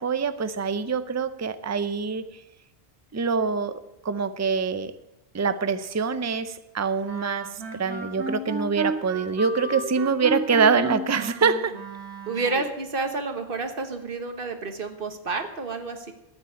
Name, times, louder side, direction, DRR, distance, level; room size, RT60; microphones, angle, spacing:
voice 1, 0.0-2.2 3.1-4.9 5.3-11.8, right 5 dB, 20° right, 12 dB, 0.5 m, -25 dB
Wind instrument woodwind instrument, 7.0-12.7, right 3 dB, 85° right, 2.3 m, -33 dB
voice 2, 12.3-16.1, right 3 dB, 55° right, 7 dB, 1.6 m, -30 dB
12.5 x 8.9 x 8.6 m, 0.91 s
omnidirectional pair, 1.1 m